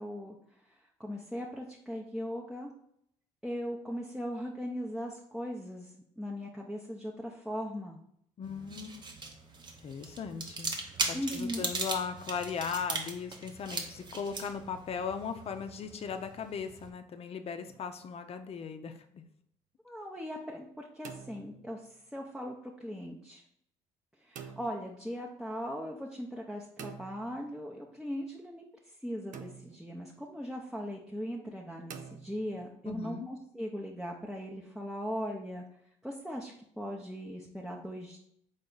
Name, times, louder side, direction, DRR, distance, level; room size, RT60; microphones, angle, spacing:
voice 1, 0.0-2.7 3.4-8.0 11.1-11.7 19.8-23.4 24.2-35.6 36.0-38.2, equal, 5° right, -2 dB, 0.7 m, -39 dB
voice 2, 8.4-9.1 9.8-10.7 11.0-19.2 32.9-33.3, left 6 dB, 50° left, 7 dB, 0.6 m, -38 dB
sound 1, 8.4-16.9, right 3 dB, 35° right, 0.8 m, -39 dB
sound 2, 17.6-18.2 20.8-22.0 24.3-24.9 26.8-27.7 29.3-30.0 31.9-32.8, right 7 dB, 70° right, 0.5 m, -48 dB
4.0 x 3.4 x 3.9 m, 0.71 s
supercardioid pair, 75°, 13 cm